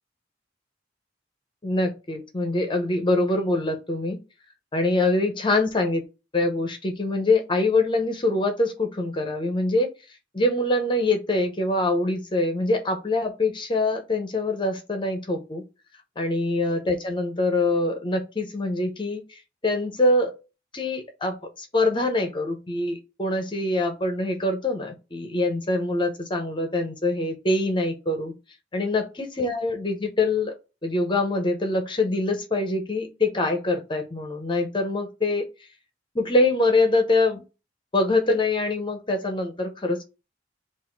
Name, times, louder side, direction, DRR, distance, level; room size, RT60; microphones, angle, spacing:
voice 1, 1.6-4.2 4.7-6.0 6.3-9.9 10.3-15.6 16.2-20.3 20.7-28.3 28.7-30.5 30.8-35.5 36.1-37.4 37.9-40.0, left 2 dB, 25° left, 0.7 m, -24 dB
4.0 x 2.5 x 4.5 m
head